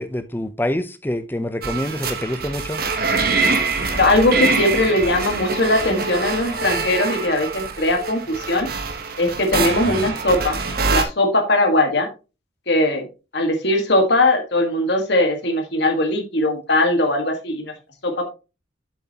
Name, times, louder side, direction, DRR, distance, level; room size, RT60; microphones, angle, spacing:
voice 1, 0.0-2.8, left 1 dB, 10° left, 0.6 m, -26 dB
sound 1, 1.6-11.0, right 4 dB, 50° right, 1.2 m, -24 dB
voice 2, 4.0-8.7 9.2-12.1 12.7-13.0 13.3-17.7 18.0-18.2, left 1 dB, 55° left, 1.6 m, -20 dB
7.8 x 7.2 x 2.9 m
head